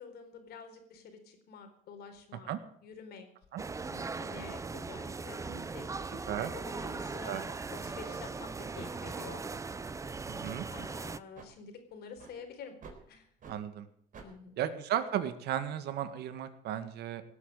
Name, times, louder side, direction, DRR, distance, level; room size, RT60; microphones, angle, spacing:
voice 1, 0.0-2.5 2.8-3.3 3.9-9.4 10.7-12.7 13.1-13.3 14.2-14.6, left 5 dB, 70° left, 6 dB, 4.2 m, -48 dB
sound 1, 3.6-11.2, right 4 dB, 20° right, 0.6 m, -39 dB
sound 2, 6.9-10.3 10.7-10.9 11.3-11.5 12.2-12.4 12.8-13.0 13.4-13.6 14.1-14.3, right 5 dB, 55° right, 4.1 m, -54 dB
voice 2, 10.3-10.7 13.5-13.9 14.6-17.2, right 10 dB, 75° right, 11 dB, 1.8 m, -34 dB
18.0 x 8.7 x 7.8 m, 0.64 s
cardioid pair, 110°, 17 cm